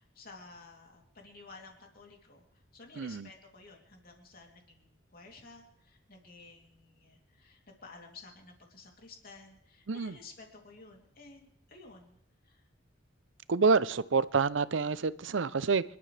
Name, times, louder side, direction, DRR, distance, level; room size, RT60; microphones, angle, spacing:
voice 1, 0.0-2.4 2.7-12.2 12.4-12.7, left 3 dB, 50° left, 1 dB, 3.1 m, -53 dB
voice 2, 3.0-3.3 9.9-10.2 13.5-15.8, right 4 dB, 75° right, 17 dB, 0.6 m, -27 dB
27.0 x 12.0 x 3.4 m, 0.77 s
head